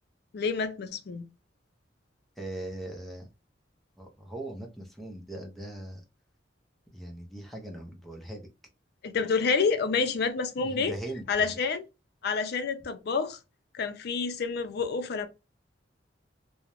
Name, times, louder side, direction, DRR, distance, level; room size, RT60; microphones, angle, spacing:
voice 1, 0.3-1.3 9.0-10.9 11.3-11.8 12.2-13.4 13.7-15.3, left 5 dB, 60° left, 0.4 m, -28 dB
voice 2, 2.4-3.3 4.0-6.0 6.9-8.5 10.6-11.6, right 1 dB, ahead, 0.5 m, -40 dB
2.4 x 2.0 x 2.9 m
head